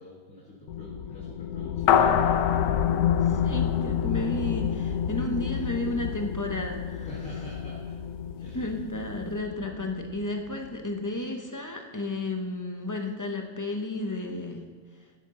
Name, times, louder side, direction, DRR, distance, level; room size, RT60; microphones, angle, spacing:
voice 1, 0.0-2.0 7.0-8.0 8.4-8.7, left 1 dB, 50° left, -5 dB, 2.0 m, -45 dB
sound 1, 0.7-10.7, left 9 dB, 65° left, 1.0 m, -30 dB
sound 2, 1.9-4.6, left 8 dB, 85° left, 1.3 m, -26 dB
voice 2, 3.2-7.1 8.5-14.7 14.9-15.0, left 2 dB, 25° left, 3 dB, 0.4 m, -32 dB
11.5 x 10.5 x 3.8 m, 1.5 s
omnidirectional pair, 1.8 m